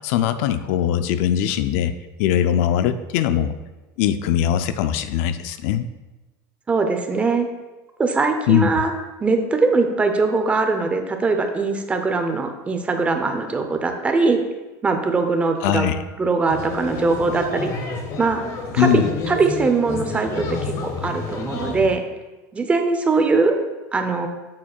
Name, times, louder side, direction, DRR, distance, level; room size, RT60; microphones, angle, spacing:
voice 1, 0.0-1.9 2.2-3.5 4.0-5.9 8.5-8.8 15.6-16.0 18.8-19.2, left 10 dB, 70° left, 11 dB, 0.4 m, -21 dB
voice 2, 6.7-7.5 8.0-8.9 9.2-14.4 14.8-15.9 16.2-17.7 18.2-18.4 18.7-19.0 19.3-22.0 22.5-23.5 23.9-24.3, right 3 dB, 15° right, 6 dB, 0.6 m, -21 dB
sound 1, 16.5-21.9, left 3 dB, 40° left, 1.0 m, -30 dB
9.0 x 7.3 x 2.4 m, 1.2 s
cardioid pair, 155°, 8 cm